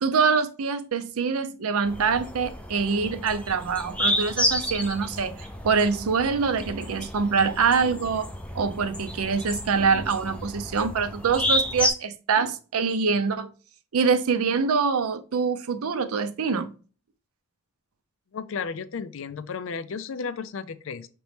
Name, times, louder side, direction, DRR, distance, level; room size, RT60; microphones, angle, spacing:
voice 1, 0.0-8.3 8.5-13.5 13.9-16.7, right 5 dB, 85° right, 0.5 m, -25 dB
sound 1, 1.9-11.9, left 1 dB, 5° left, 0.4 m, -31 dB
voice 2, 18.3-21.1, left 5 dB, 65° left, 0.4 m, -33 dB
5.2 x 3.0 x 3.3 m
head